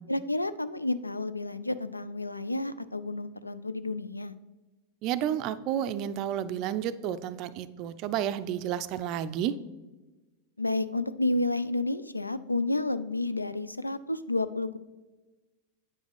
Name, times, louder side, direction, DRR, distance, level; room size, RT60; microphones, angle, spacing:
voice 1, 0.1-4.3 10.6-14.8, left 2 dB, 85° left, 14 dB, 0.3 m, -30 dB
voice 2, 5.0-9.5, right 10 dB, 40° right, 13 dB, 0.4 m, -31 dB
8.9 x 7.1 x 3.4 m, 1.2 s
figure-of-eight pair, 90°, 0 cm